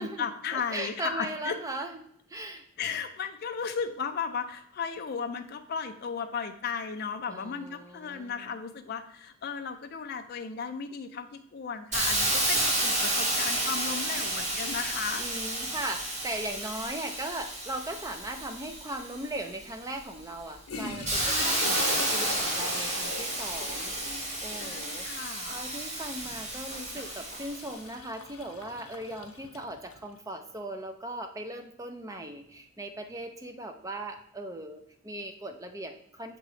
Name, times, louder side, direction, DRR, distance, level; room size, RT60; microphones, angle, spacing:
voice 1, 0.0-1.6 2.8-15.2 21.2-21.8 24.6-25.5, left 6 dB, 45° left, 6 dB, 0.3 m, -35 dB
voice 2, 0.5-2.0 2.3-2.7 7.3-8.6 15.2-36.4, right 1 dB, 15° right, 6 dB, 0.5 m, -38 dB
Hiss, 11.9-19.5 20.0-27.7, right 1 dB, 30° right, 1.2 m, -31 dB
Toilet flush, 20.7-30.1, left 3 dB, 75° left, 0.8 m, -41 dB
6.6 x 3.0 x 4.7 m, 0.70 s
head